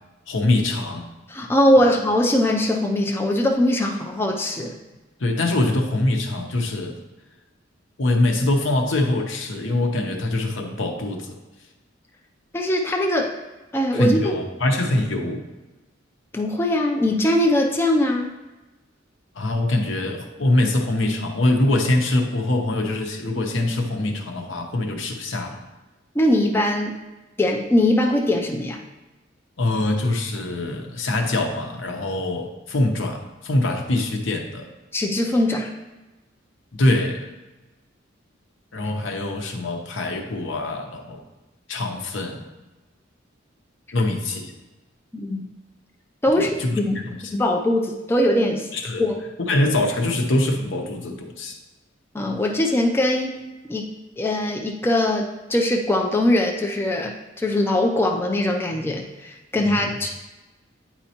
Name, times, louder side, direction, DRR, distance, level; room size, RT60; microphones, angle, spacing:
voice 1, 0.3-1.1 1.8-1.9 5.2-7.0 8.0-11.3 13.9-15.5 19.4-25.6 29.6-34.7 36.8-37.2 38.7-41.2 41.7-42.4 43.9-44.5 46.3-47.2 48.7-49.0 49.4-51.6 59.6-60.0, left 2 dB, 70° left, 3 dB, 0.8 m, -23 dB
voice 2, 1.3-4.7 12.5-13.4 13.7-14.3 16.3-18.3 26.2-27.0 27.4-28.8 34.9-35.7 45.1-45.5 46.2-46.5 46.8-47.0 47.3-48.7 49.0-49.2 52.1-53.9 54.2-60.1, left 1 dB, 10° left, 1 dB, 0.4 m, -21 dB
9.0 x 4.3 x 2.8 m, 1.1 s
head